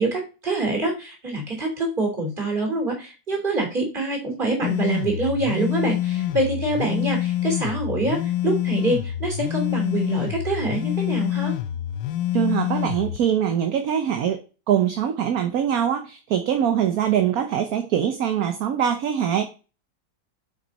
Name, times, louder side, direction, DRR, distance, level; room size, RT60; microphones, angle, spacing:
voice 1, 0.0-11.5, right 2 dB, 25° right, 2 dB, 3.0 m, -25 dB
sound 1, 4.6-13.2, left 12 dB, 70° left, 1.0 m, -26 dB
voice 2, 12.3-14.4 14.7-19.5, right 9 dB, 60° right, 7 dB, 1.2 m, -23 dB
8.7 x 5.9 x 4.1 m, 0.34 s
omnidirectional pair, 2.0 m